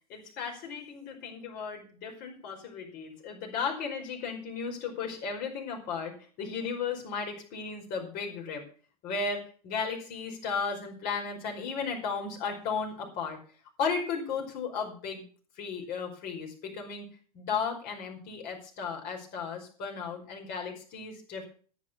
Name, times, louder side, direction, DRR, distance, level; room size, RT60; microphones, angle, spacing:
voice 1, 0.1-8.6 9.0-13.4 13.8-15.2 15.6-17.1 17.3-21.5, left 5 dB, 50° left, 1 dB, 5.2 m, -35 dB
10.0 x 9.8 x 7.0 m, 0.41 s
figure-of-eight pair, 85°, 20 cm